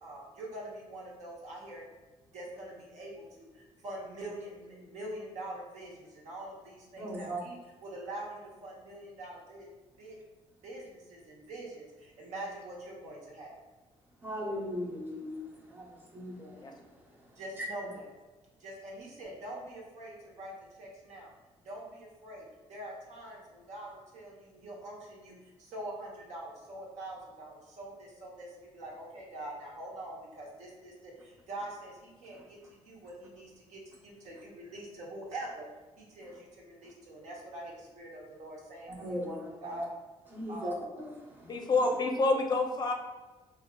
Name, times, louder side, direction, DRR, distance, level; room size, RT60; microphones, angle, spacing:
voice 1, 0.0-1.8 2.3-9.7 10.0-10.2 10.6-13.6 17.4-18.1 18.6-21.3 21.6-35.7 36.0-39.9 40.5-40.8, right 1 dB, 75° right, -3 dB, 0.8 m, -44 dB
voice 2, 7.0-7.4 14.2-15.3 15.7-15.8 16.1-16.6 17.6-17.7 39.0-39.8 40.3-40.7, equal, 15° right, -3 dB, 0.8 m, -37 dB
voice 3, 41.4-42.9, left 3 dB, 35° left, 2 dB, 0.4 m, -28 dB
3.3 x 2.3 x 2.2 m, 1.2 s
cardioid pair, 85°, 12 cm